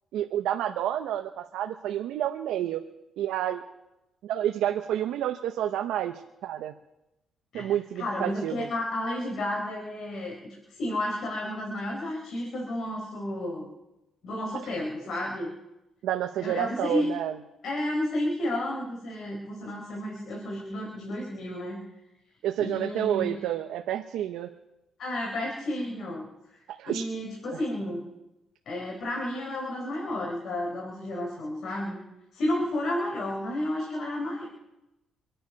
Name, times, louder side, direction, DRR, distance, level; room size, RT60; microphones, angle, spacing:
voice 1, 0.1-2.8 3.2-3.6 4.2-6.7 7.5-8.7 16.0-17.4 22.4-24.5 26.8-27.0 27.5-27.6, right 11 dB, 85° right, 5 dB, 0.9 m, -29 dB
voice 2, 7.5-13.7 14.2-15.5 16.4-17.1 17.6-21.8 22.6-23.5 25.0-28.0 28.7-32.0 32.3-34.5, left 1 dB, 65° left, -1 dB, 4.4 m, -32 dB
26.5 x 10.0 x 5.3 m, 0.96 s
cardioid pair, 90°, 0 cm